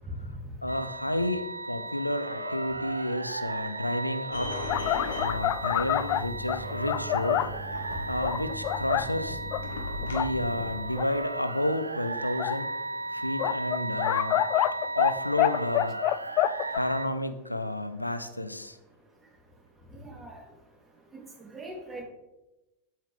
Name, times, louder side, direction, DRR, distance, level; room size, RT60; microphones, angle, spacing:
voice 1, 0.6-4.5 5.1-7.5 8.1-9.4 10.0-12.7 13.1-14.4 14.9-16.0 16.8-18.8, left 1 dB, 85° left, 12 dB, 0.6 m, -31 dB
sound 1, 0.7-17.1, right 2 dB, 80° right, 0.6 m, -36 dB
sound 2, 4.3-10.8, left 2 dB, 65° left, 1.5 m, -38 dB
sound 3, 4.7-7.6 8.2-9.1 9.5-9.6 10.0-10.3 11.0-11.1 12.4-12.6 13.4-15.1 15.4-16.8, left 14 dB, 40° left, 0.4 m, -27 dB
voice 2, 19.9-20.4 21.5-22.0, right 1 dB, 15° right, -1 dB, 3.3 m, -41 dB
13.0 x 8.9 x 3.5 m, 1.0 s
figure-of-eight pair, 90°, 0 cm